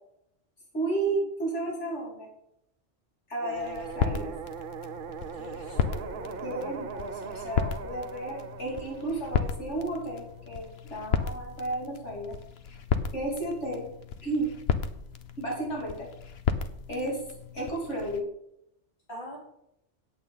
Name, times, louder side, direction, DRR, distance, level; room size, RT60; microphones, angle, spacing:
voice 1, 0.7-2.3 3.3-4.3 6.4-12.4 13.1-13.9 14.2-14.5 15.4-16.1 16.9-17.2 17.5-18.2, right 2 dB, 80° left, -3 dB, 3.6 m, -32 dB
sound 1, 3.4-10.4, right 6 dB, 55° right, 0.8 m, -40 dB
sound 2, 3.6-18.2, left 7 dB, 65° left, 1.1 m, -34 dB
voice 2, 5.3-6.8 19.1-19.4, equal, 45° left, -3 dB, 3.6 m, -44 dB
9.0 x 8.8 x 5.6 m, 0.78 s
omnidirectional pair, 1.2 m